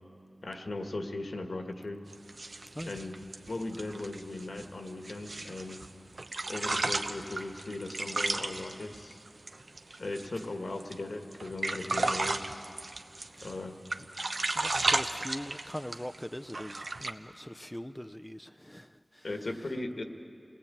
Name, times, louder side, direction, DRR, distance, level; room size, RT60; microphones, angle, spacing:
voice 1, 0.4-2.0 2.8-5.8 6.5-9.2 10.0-12.7 13.4-13.8 19.2-20.0, left 2 dB, 80° left, 4 dB, 1.8 m, -38 dB
sound 1, 2.1-5.9 6.2-10.5 10.8-10.9 11.3-13.6 13.8-16.2 16.5-17.1, right 2 dB, 70° right, 1.0 m, -34 dB
voice 2, 2.7-3.1 13.4-13.6 14.5-19.6, equal, 10° left, 8 dB, 0.5 m, -42 dB
28.5 x 19.5 x 8.6 m, 2.4 s
wide cardioid pair, 60°, 0 cm